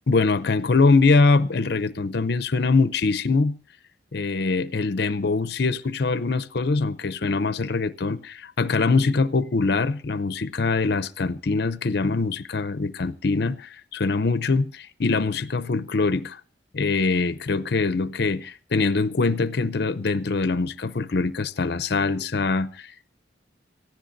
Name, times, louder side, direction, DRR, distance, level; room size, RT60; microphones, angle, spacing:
voice 1, 0.1-3.6 4.1-16.4 16.7-23.1, left 3 dB, 60° left, 0.6 m, -23 dB
24.5 x 15.0 x 2.6 m
head